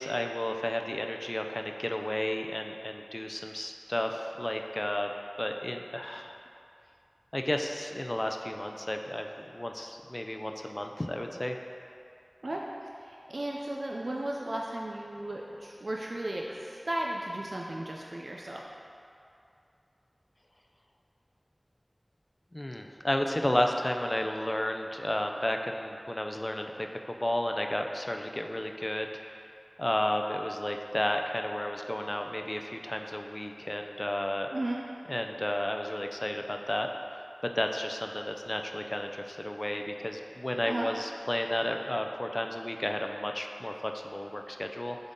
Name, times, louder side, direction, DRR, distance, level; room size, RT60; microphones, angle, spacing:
voice 1, 0.0-5.1 5.4-6.4 7.3-11.6 22.5-29.1 29.8-34.5 35.1-36.9 37.6-45.0, left 1 dB, 35° left, 4 dB, 0.4 m, -32 dB
voice 2, 13.0-18.6 34.5-34.8 40.7-40.9, right 1 dB, 85° right, -2 dB, 0.4 m, -35 dB
7.7 x 4.0 x 3.7 m, 2.5 s
wide cardioid pair, 45°, 0 cm